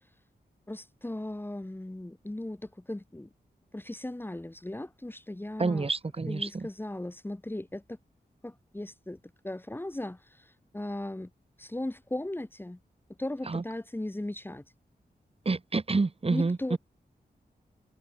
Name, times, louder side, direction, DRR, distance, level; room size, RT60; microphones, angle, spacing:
voice 1, 0.7-3.3 3.7-5.9 6.3-8.0 8.4-9.2 9.4-11.3 11.6-12.8 13.2-14.6 16.3-16.8, left 1 dB, 10° left, 3.5 m, -37 dB
voice 2, 5.6-6.7 13.5-13.6 15.4-16.8, right 3 dB, 35° right, 5.1 m, -28 dB
wide cardioid pair, 145°, 17 cm